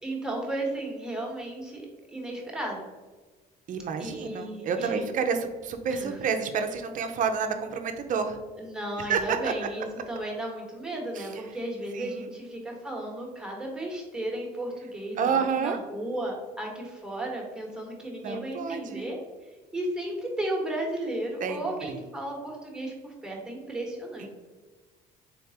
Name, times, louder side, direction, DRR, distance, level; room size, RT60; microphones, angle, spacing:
voice 1, 0.0-1.8 2.1-2.9 4.0-5.1 5.9-6.2 8.6-19.2 19.7-24.3, right 1 dB, 5° right, -2 dB, 1.1 m, -34 dB
voice 2, 3.7-8.4 9.0-9.5 11.1-11.4 11.9-12.3 15.2-15.8 18.1-19.1 21.4-22.0 24.2-24.3, right 6 dB, 50° right, 7 dB, 0.5 m, -29 dB
4.1 x 3.3 x 2.8 m, 1.3 s
cardioid pair, 110°, 17 cm